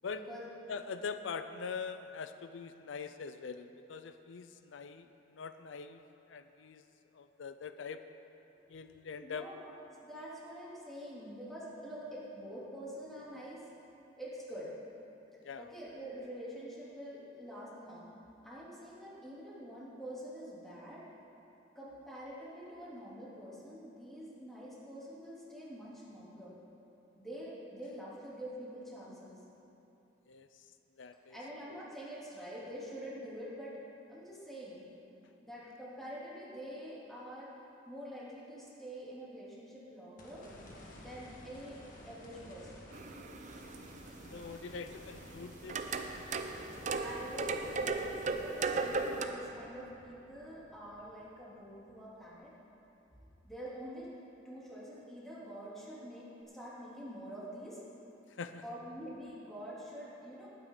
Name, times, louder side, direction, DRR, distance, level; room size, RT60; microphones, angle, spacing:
voice 1, 0.0-0.5 8.6-8.9 9.2-9.7 10.0-13.7 14.2-14.7 15.6-18.1 18.4-21.1 21.7-26.5 27.2-29.4 31.3-33.8 34.1-34.9 35.4-37.5 37.8-40.5 41.0-42.9 43.2-43.3 46.9-52.5 53.4-54.1 54.4-57.8 58.6-60.5, equal, ahead, -9 dB, 3.0 m, -46 dB
voice 2, 0.7-6.0 6.3-6.8 7.1-8.0 8.7-9.4 15.4-15.6 30.3-30.5 31.0-31.4 31.7-31.8 44.3-46.3 58.4-58.6, left 5 dB, 90° left, 9 dB, 0.5 m, -43 dB
sound 1, 40.2-52.5 53.0-53.1 56.4-56.5, left 1 dB, 45° left, 1.5 m, -54 dB
sound 2, 42.9-49.3, right 4 dB, 40° right, 0.6 m, -37 dB
19.5 x 9.5 x 3.9 m, 2.9 s
head